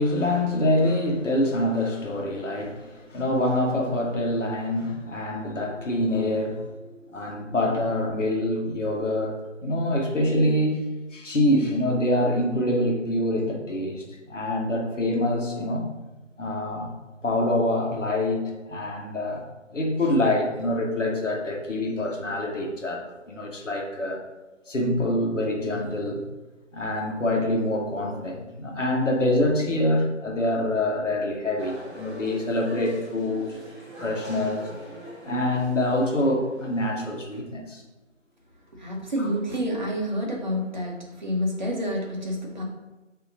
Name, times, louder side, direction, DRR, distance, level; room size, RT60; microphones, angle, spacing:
voice 1, 0.0-15.9 16.4-16.9 17.2-19.5 19.7-24.2 24.7-26.2 26.7-33.6 34.0-34.7 35.2-37.8, left 1 dB, 75° left, 0 dB, 1.0 m, -25 dB
sound 1, 31.6-37.4, equal, 15° left, 0.9 m, -43 dB
voice 2, 38.7-42.6, equal, 40° right, -1 dB, 0.8 m, -28 dB
4.8 x 2.8 x 2.6 m, 1.1 s
figure-of-eight pair, 165°, 37 cm